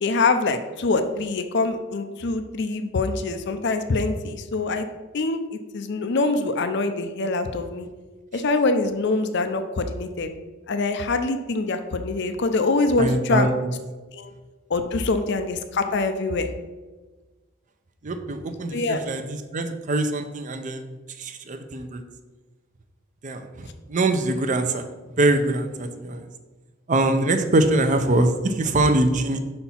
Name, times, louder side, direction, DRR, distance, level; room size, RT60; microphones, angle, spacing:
voice 1, 0.0-4.9 5.1-7.9 8.3-10.3 10.7-13.5 14.1-14.3 14.7-16.5 18.7-19.0, left 3 dB, 55° left, 8 dB, 0.5 m, -24 dB
voice 2, 13.0-13.5 18.0-20.8 21.2-22.0 23.2-24.9 25.2-26.2 26.9-29.4, right 2 dB, 35° right, 8 dB, 0.5 m, -23 dB
5.7 x 4.3 x 5.6 m, 1.3 s
head